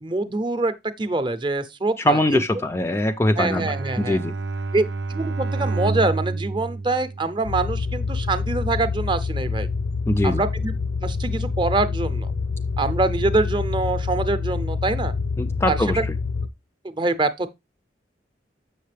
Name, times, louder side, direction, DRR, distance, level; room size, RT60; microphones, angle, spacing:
voice 1, 0.0-2.4 3.4-4.2 4.7-9.7 10.2-10.7 11.0-12.3 12.8-15.1 15.6-16.0 17.0-17.5, right 2 dB, 25° right, 0.7 m, -25 dB
voice 2, 2.0-3.6 4.0-4.3 10.1-10.4 15.4-16.2, left 1 dB, 15° left, 0.4 m, -22 dB
Bowed string instrument, 3.4-7.8, right 3 dB, 80° right, 0.6 m, -29 dB
sound 1, 7.4-16.5, left 4 dB, 65° left, 0.5 m, -26 dB
7.4 x 6.4 x 3.3 m
head